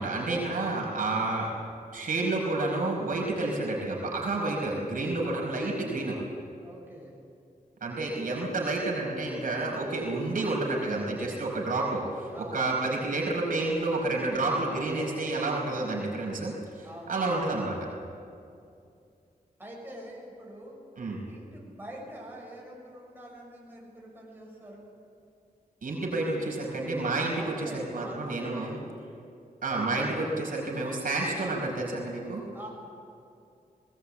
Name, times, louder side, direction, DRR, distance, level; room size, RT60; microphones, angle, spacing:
voice 1, 0.0-1.5 1.9-6.2 7.8-17.8 21.0-21.2 25.8-28.8 29.6-32.4, right 2 dB, 65° right, -2 dB, 5.0 m, -30 dB
voice 2, 6.6-7.1 12.3-12.7 16.8-17.2 19.6-20.8 21.3-24.9 27.3-28.6 32.5-32.7, right 1 dB, 15° right, -4 dB, 6.7 m, -45 dB
19.5 x 18.5 x 8.6 m, 2.5 s
wide cardioid pair, 145°, 15 cm